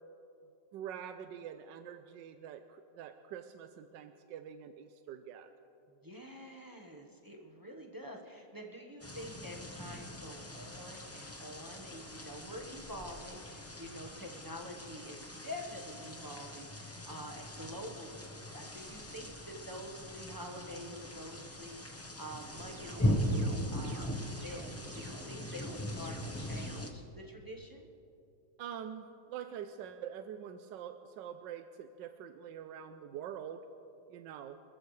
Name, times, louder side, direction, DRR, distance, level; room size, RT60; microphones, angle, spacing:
voice 1, 0.7-5.5 28.6-33.6 34.1-34.6, right 9 dB, 80° right, 8 dB, 1.3 m, -45 dB
voice 2, 6.0-27.9, equal, 15° right, 0 dB, 0.9 m, -47 dB
sound 1, 9.0-26.9, equal, 20° left, 0.4 m, -39 dB
sound 2, 22.5-26.9, right 5 dB, 60° right, 1.2 m, -53 dB
25.5 x 14.0 x 3.2 m, 2.7 s
omnidirectional pair, 1.9 m